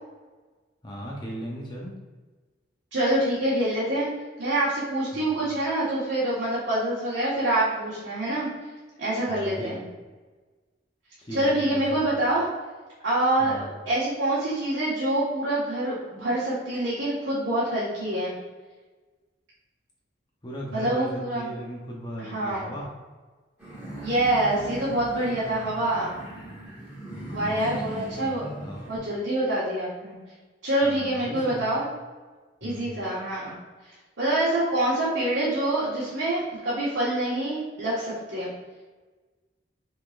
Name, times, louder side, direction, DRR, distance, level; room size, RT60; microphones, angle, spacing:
voice 1, 0.8-2.0 5.1-5.4 9.3-9.8 11.3-12.0 13.4-13.7 20.4-22.9 27.1-28.9 30.8-31.7 32.6-32.9, equal, 25° left, -3 dB, 0.7 m, -38 dB
voice 2, 2.9-4.1 4.4-8.5 9.0-9.8 11.3-12.5 13.0-18.3 20.7-21.5 22.2-22.7 24.0-26.2 27.3-28.4 28.9-30.2 30.6-31.9 32.6-33.5 34.2-38.5, right 1 dB, 80° right, -10 dB, 1.5 m, -26 dB
sound 1, 23.6-29.0, right 1 dB, 10° right, 1.4 m, -39 dB
5.5 x 3.8 x 2.5 m, 1.3 s
head